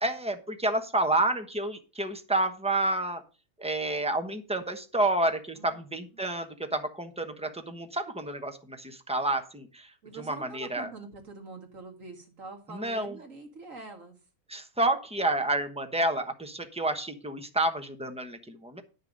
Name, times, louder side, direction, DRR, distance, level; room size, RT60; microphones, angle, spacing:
voice 1, 0.0-3.2 3.6-10.9 12.7-13.2 14.5-18.8, right 2 dB, 5° right, 6 dB, 0.9 m, -29 dB
voice 2, 10.0-14.2, right 3 dB, 60° right, 4 dB, 2.4 m, -44 dB
10.0 x 6.7 x 5.2 m, 0.34 s
omnidirectional pair, 1.6 m